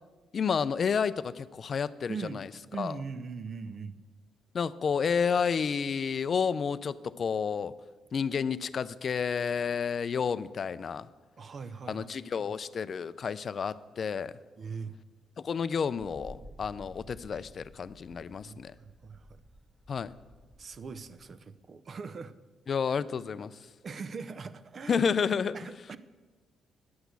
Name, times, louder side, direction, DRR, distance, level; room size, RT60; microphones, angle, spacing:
voice 1, 0.3-2.5 2.8-3.0 4.5-7.7 8.1-11.1 11.9-14.4 15.4-18.7 19.9-20.1 22.7-23.6 24.9-25.6, left 6 dB, 50° left, 15 dB, 0.4 m, -30 dB
voice 2, 2.1-2.4 2.7-4.0 11.4-12.5 14.6-15.0 18.4-19.4 20.6-22.3 23.8-25.0 25.5-26.0, right 5 dB, 45° right, 14 dB, 0.6 m, -41 dB
Wind, 16.0-21.4, equal, 25° right, 1.6 m, -53 dB
9.5 x 6.0 x 8.2 m, 1.3 s
cardioid pair, 90°, 0 cm